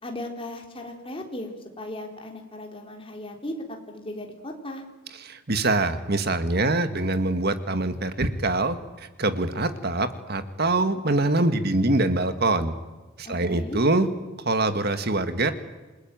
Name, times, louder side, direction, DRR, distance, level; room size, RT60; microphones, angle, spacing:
voice 1, 0.0-1.5 1.8-4.8 13.2-13.8, left 1 dB, 25° left, 2 dB, 4.1 m, -36 dB
voice 2, 5.2-12.7 13.2-14.1 14.4-15.5, right 2 dB, 50° right, 10 dB, 1.8 m, -24 dB
28.5 x 20.5 x 9.3 m, 1.2 s
head